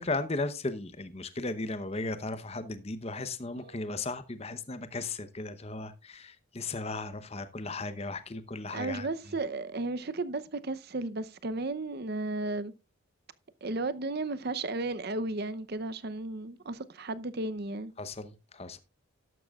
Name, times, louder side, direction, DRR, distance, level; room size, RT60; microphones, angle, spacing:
voice 1, 0.0-9.1 18.0-18.8, left 3 dB, 30° left, 0.8 m, -36 dB
voice 2, 8.7-12.7 13.6-17.9, right 2 dB, 45° right, 0.7 m, -34 dB
12.5 x 11.5 x 2.4 m
head